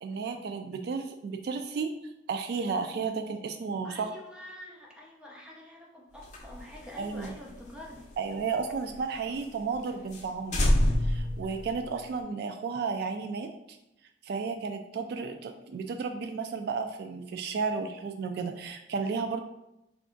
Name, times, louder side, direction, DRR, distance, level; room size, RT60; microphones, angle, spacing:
voice 1, 0.0-1.9 2.3-4.1 7.0-7.4 8.2-10.7 11.0-13.8 14.2-19.4, right 5 dB, 65° right, 7 dB, 0.3 m, -33 dB
voice 2, 3.8-8.0, left 1 dB, 5° right, -3 dB, 0.7 m, -46 dB
sound 1, 6.2-9.0 9.3-9.4 9.8-9.9 10.1-10.3 10.5-12.2, left 1 dB, 45° left, 0.6 m, -29 dB
3.3 x 2.5 x 3.8 m, 0.89 s
head